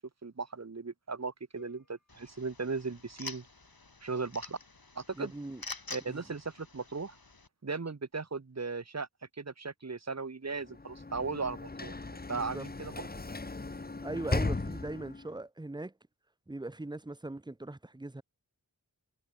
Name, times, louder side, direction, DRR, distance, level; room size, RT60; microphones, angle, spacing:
voice 1, 0.0-3.5 4.0-4.6 4.9-5.3 5.9-7.1 7.6-9.1 9.4-12.0 12.3-13.1, right 4 dB, 45° right, 1.1 m, -37 dB
sound 1, 1.6-3.6, left 2 dB, 55° left, 7.3 m, -62 dB
sound 2, 2.1-7.5, left 3 dB, 75° left, 3.4 m, -47 dB
voice 2, 5.1-5.6 6.1-6.2 12.3-12.7 14.0-15.9 16.5-18.2, right 2 dB, 10° right, 0.7 m, -40 dB
Sliding door / Slam, 10.6-15.4, left 3 dB, 25° left, 0.8 m, -37 dB
wide cardioid pair, 50°, 36 cm